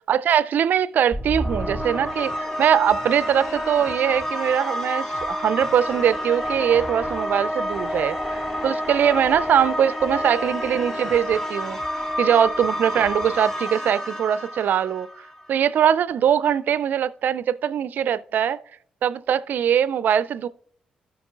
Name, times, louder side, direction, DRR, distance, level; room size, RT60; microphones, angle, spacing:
voice 1, 0.1-11.8 12.2-15.1 15.5-18.6 19.0-20.5, right 9 dB, 60° right, 0.4 m, -22 dB
sound 1, 1.1-15.5, equal, 20° left, 3.4 m, -29 dB
17.0 x 5.9 x 2.4 m
hypercardioid pair, 40°, 3 cm